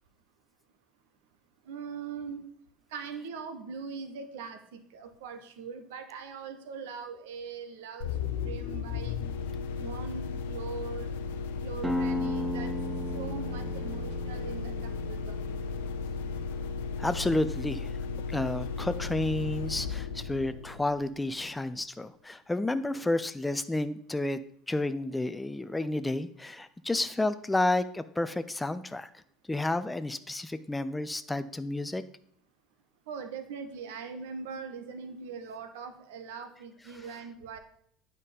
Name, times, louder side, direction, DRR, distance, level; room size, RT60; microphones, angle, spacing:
voice 1, 1.7-2.5 2.9-8.1 8.4-9.5 9.8-11.1 11.6-12.7 13.1-15.4 33.1-37.6, right 5 dB, 65° right, 8 dB, 1.1 m, -41 dB
sound 1, 8.0-21.5, left 5 dB, 65° left, 0.7 m, -35 dB
sound 2, 11.8-17.2, left 1 dB, 10° right, 1.0 m, -36 dB
voice 2, 17.0-18.0 18.3-24.4 24.7-29.1 29.5-32.0, left 2 dB, 10° left, 12 dB, 0.5 m, -31 dB
9.7 x 5.3 x 5.4 m, 0.66 s
figure-of-eight pair, 70°, 0 cm